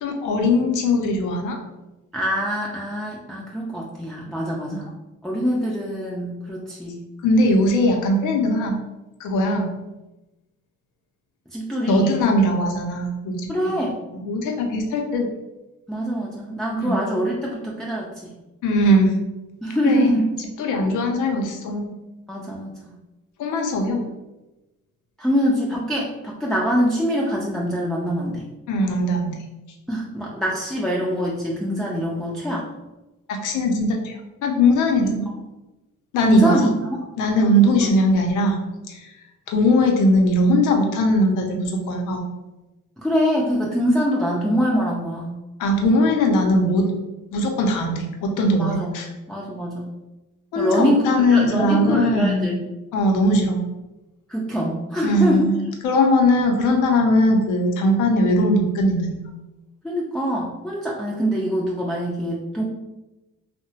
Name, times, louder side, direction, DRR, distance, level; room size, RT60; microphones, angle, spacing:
voice 1, 0.0-1.6 7.2-8.8 9.2-9.7 11.9-13.4 13.6-13.8 14.2-15.3 16.8-17.0 18.6-19.1 19.8-20.2 20.6-21.9 23.4-24.1 28.7-29.4 33.3-35.2 36.1-36.7 37.2-38.6 38.9-39.1 39.5-42.2 45.6-46.8 47.3-49.1 50.5-52.6 52.9-53.6 55.0-55.6 55.8-59.2, left 1 dB, 85° left, 2 dB, 0.6 m, -20 dB
voice 2, 2.1-4.9 5.2-7.0 11.5-12.1 13.5-14.0 15.9-18.3 19.6-20.3 22.3-23.0 25.2-28.5 29.9-32.7 35.0-35.4 36.2-37.0 43.0-45.4 48.6-49.0 49.3-49.9 50.6-52.6 54.3-55.5 59.8-62.6, equal, ahead, -5 dB, 0.4 m, -24 dB
2.7 x 2.1 x 2.7 m, 1.0 s
cardioid pair, 90°, 30 cm